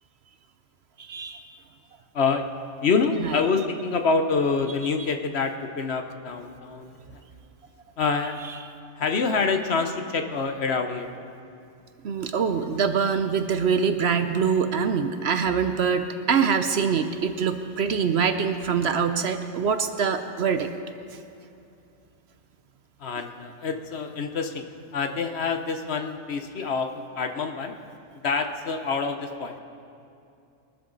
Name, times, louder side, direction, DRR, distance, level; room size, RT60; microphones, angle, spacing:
voice 1, 1.0-1.4 3.2-3.3 12.0-20.7, right 6 dB, 60° right, 8 dB, 0.9 m, -24 dB
voice 2, 2.1-2.5 2.8-6.9 8.0-8.4 9.0-11.1 23.0-24.6 24.9-26.9 27.2-27.7 28.1-29.6, left 4 dB, 55° left, 6 dB, 1.0 m, -26 dB
23.0 x 13.0 x 4.0 m, 2.6 s
omnidirectional pair, 1.4 m